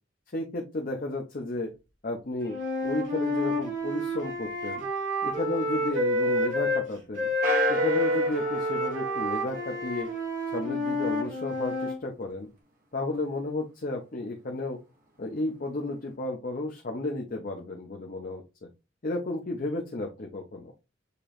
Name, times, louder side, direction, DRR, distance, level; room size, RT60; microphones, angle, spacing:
voice 1, 0.3-1.7 2.0-2.5 2.8-4.9 5.2-7.3 7.7-10.1 10.5-12.5 12.9-14.8 15.2-18.4 19.0-20.7, left 2 dB, 45° left, 1 dB, 0.7 m, -33 dB
Wind instrument woodwind instrument, 2.4-6.8 7.1-12.0, equal, 65° right, 3.0 m, -29 dB
sound 1, 7.4-10.1, left 1 dB, 45° right, 1.1 m, -33 dB
6.7 x 2.9 x 2.5 m, 0.27 s
head